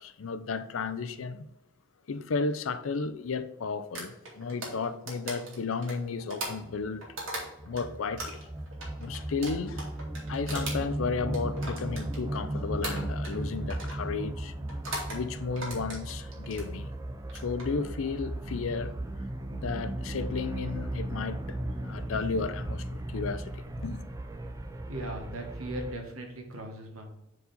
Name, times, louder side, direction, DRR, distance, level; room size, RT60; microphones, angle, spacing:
voice 1, 0.0-1.5 2.1-7.0 7.6-8.5 9.0-9.8 10.3-14.5 15.1-16.9 17.3-19.0 19.5-24.1, left 4 dB, 70° left, 0.5 m, -33 dB
sound 1, 4.0-7.8 8.2-12.5 12.8-13.4 13.7-14.0 14.7-15.2 15.6-16.7 17.2-17.6, right 1 dB, 65° right, 2.0 m, -38 dB
sound 2, 6.7-25.9, right 1 dB, 15° right, 0.4 m, -36 dB
voice 2, 24.9-27.1, right 1 dB, 80° right, 1.4 m, -38 dB
4.8 x 4.1 x 5.2 m
head